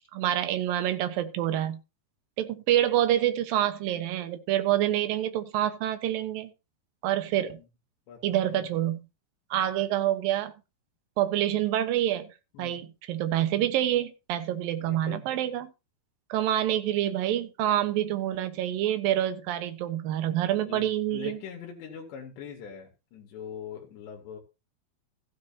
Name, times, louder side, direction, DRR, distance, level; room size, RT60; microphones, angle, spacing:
voice 1, 0.1-1.8 2.4-6.5 7.0-7.6 8.2-9.0 9.5-10.5 11.2-12.3 12.6-15.7 16.3-21.4, right 12 dB, 70° right, 2.6 m, -27 dB
voice 2, 7.3-7.7 8.1-8.7 12.5-12.8 14.8-15.3 20.7-24.4, left 7 dB, 90° left, 4.1 m, -43 dB
15.0 x 9.7 x 2.8 m
omnidirectional pair, 4.8 m